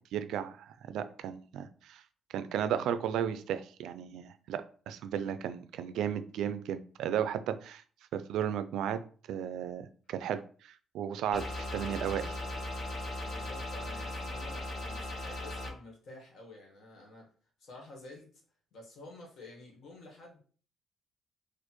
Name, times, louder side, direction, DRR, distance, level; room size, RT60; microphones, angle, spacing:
voice 1, 0.0-2.0 2.3-7.8 8.1-9.0 9.3-11.4 11.7-12.4, right 9 dB, 85° right, 11 dB, 0.3 m, -34 dB
sound 1, 11.3-15.7, left 1 dB, 45° left, 1.0 m, -38 dB
voice 2, 13.2-17.3 17.6-18.3 18.7-20.4, left 2 dB, 70° left, 0 dB, 1.4 m, -50 dB
4.2 x 2.4 x 3.0 m, 0.42 s
cardioid pair, 105°, 0 cm